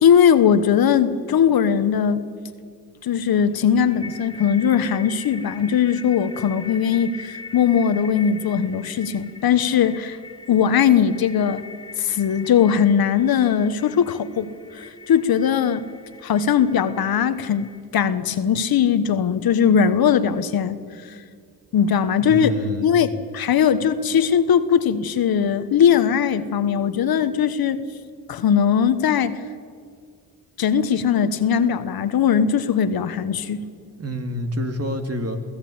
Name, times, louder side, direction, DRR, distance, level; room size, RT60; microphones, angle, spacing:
voice 1, 0.0-2.2 3.0-10.2 10.5-11.6 12.0-15.9 16.2-21.2 21.7-27.8 28.3-29.4 30.6-33.6, left 8 dB, 65° left, 12 dB, 1.3 m, -19 dB
sound 1, 3.5-17.8, left 4 dB, 15° left, 2.0 m, -42 dB
voice 2, 22.2-22.9 34.0-35.4, equal, 40° right, 5 dB, 2.8 m, -27 dB
23.5 x 16.0 x 8.8 m, 2.1 s
cardioid pair, 70°, 38 cm